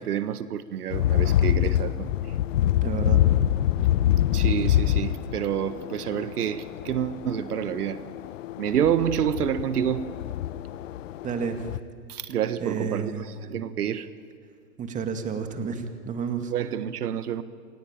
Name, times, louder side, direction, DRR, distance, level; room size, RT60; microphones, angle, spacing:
voice 1, 0.0-2.1 4.3-8.0 8.6-10.1 12.1-14.1 16.5-17.4, right 9 dB, 75° right, 1.5 m, -28 dB
sound 1, 0.9-11.8, left 12 dB, 55° left, 0.8 m, -25 dB
voice 2, 2.8-3.2 11.2-11.6 12.6-13.2 14.8-16.5, right 6 dB, 15° right, 2.1 m, -30 dB
29.0 x 22.0 x 9.0 m
hypercardioid pair, 145°, 47 cm